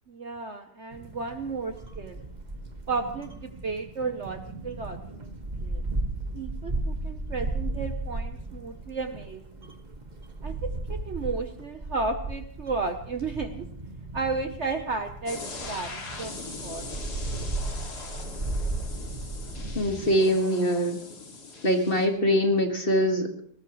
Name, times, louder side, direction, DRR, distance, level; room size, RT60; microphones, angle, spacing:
voice 1, 0.1-2.2 2.9-5.8 6.3-9.8 10.4-13.7 14.1-16.3 16.6-16.9, right 4 dB, 50° right, 7 dB, 1.1 m, -33 dB
sound 1, 0.9-20.2, right 2 dB, 25° right, 1.4 m, -35 dB
sound 2, 15.3-22.1, left 3 dB, 70° left, 2.9 m, -41 dB
voice 2, 19.7-21.0 21.6-23.3, equal, 35° left, 4 dB, 2.0 m, -23 dB
21.0 x 18.5 x 3.1 m, 0.63 s
omnidirectional pair, 1.8 m